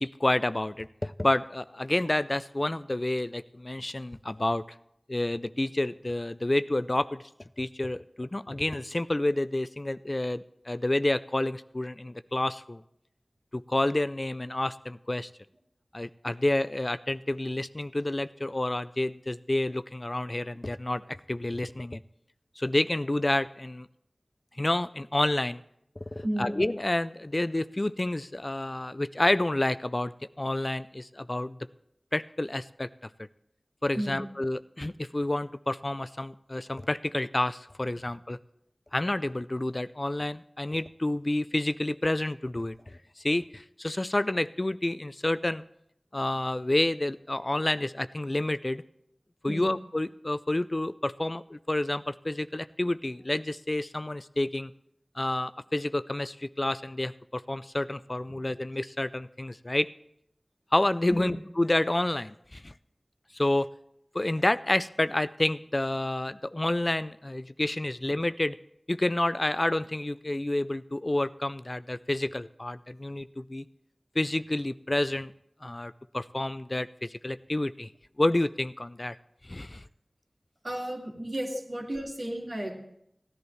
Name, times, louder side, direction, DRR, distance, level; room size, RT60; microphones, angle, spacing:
voice 1, 0.0-4.6 5.1-7.2 7.6-12.8 13.5-15.3 15.9-22.0 22.6-23.9 24.6-25.6 26.2-30.1 30.4-31.6 32.1-32.9 33.8-38.4 38.9-45.6 46.1-48.8 49.4-54.7 55.2-59.9 60.7-62.7 63.3-63.7 64.1-68.6 68.9-73.6 74.2-75.3 75.6-77.9 78.2-79.1 79.4-79.8, left 1 dB, 40° left, 14 dB, 0.3 m, -29 dB
voice 2, 26.2-26.6 33.9-34.2 37.9-38.0 49.5-49.7 61.1-61.3 80.6-82.8, right 1 dB, 60° right, -1 dB, 2.4 m, -33 dB
16.5 x 10.5 x 3.2 m, 0.75 s
wide cardioid pair, 45°, 0 cm